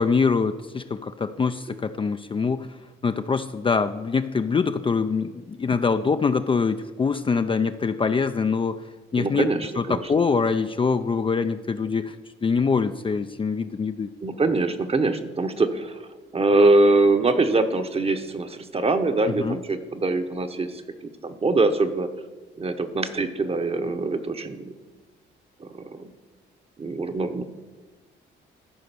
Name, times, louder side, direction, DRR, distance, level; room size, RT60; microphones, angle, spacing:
voice 1, 0.0-2.8 3.0-9.5 9.8-12.2 12.4-14.1 19.4-19.6, left 5 dB, 25° left, 9 dB, 0.4 m, -24 dB
voice 2, 9.2-10.1 14.2-16.1 16.3-20.8 21.2-22.1 22.6-24.7 25.6-26.1 26.8-27.4, right 2 dB, 30° right, 8 dB, 1.0 m, -23 dB
13.5 x 5.1 x 6.8 m, 1.3 s
cardioid pair, 90°, 20 cm